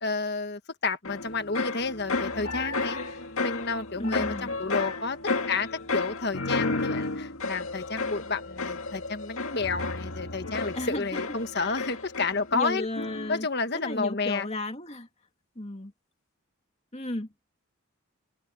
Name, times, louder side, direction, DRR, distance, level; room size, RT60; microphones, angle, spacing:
voice 1, 0.0-3.0 3.4-5.2 5.5-12.9 13.3-14.5, left 4 dB, 50° left, 1.4 m, -30 dB
sound 1, 1.0-12.7 12.9-13.5, left 3 dB, 80° left, 1.9 m, -32 dB
voice 2, 3.9-4.5 10.7-11.2 11.5-11.9 12.5-13.5 13.7-15.1 15.6-15.9 16.9-17.3, left 1 dB, 30° left, 2.6 m, -34 dB
head